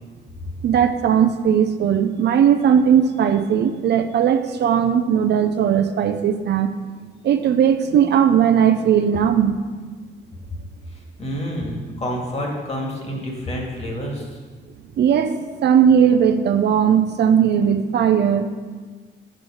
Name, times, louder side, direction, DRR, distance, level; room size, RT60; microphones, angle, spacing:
voice 1, 0.6-6.7 7.2-9.6 15.0-18.5, right 8 dB, 60° right, 8 dB, 0.5 m, -18 dB
voice 2, 11.2-14.4, equal, 35° left, -1 dB, 1.9 m, -28 dB
7.7 x 3.8 x 6.1 m, 1.4 s
cardioid pair, 90°, 20 cm